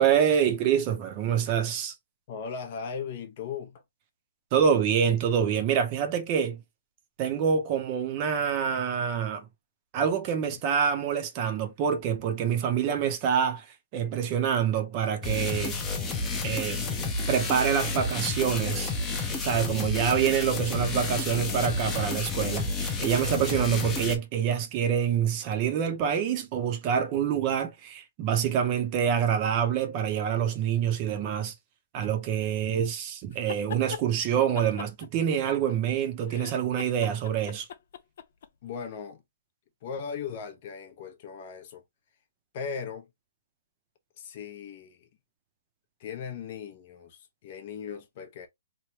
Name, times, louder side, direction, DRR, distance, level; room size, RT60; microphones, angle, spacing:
voice 1, 0.0-1.9 4.5-6.6 7.2-9.5 9.9-13.7 13.9-15.8 16.4-16.8 17.3-18.9 19.4-31.5 31.9-37.7, right 8 dB, 30° right, 0.6 m, -26 dB
voice 2, 2.3-3.8 10.5-10.6 38.6-39.2 39.8-41.8 42.5-43.1 44.2-45.1 46.0-48.5, left 6 dB, 40° left, 0.8 m, -38 dB
sound 1, 15.2-24.2, left 3 dB, 15° left, 0.6 m, -30 dB
sound 2, 33.3-34.0 34.6-35.9 36.3-38.5, left 8 dB, 60° left, 0.4 m, -40 dB
3.2 x 2.2 x 2.8 m
hypercardioid pair, 155°, 0 cm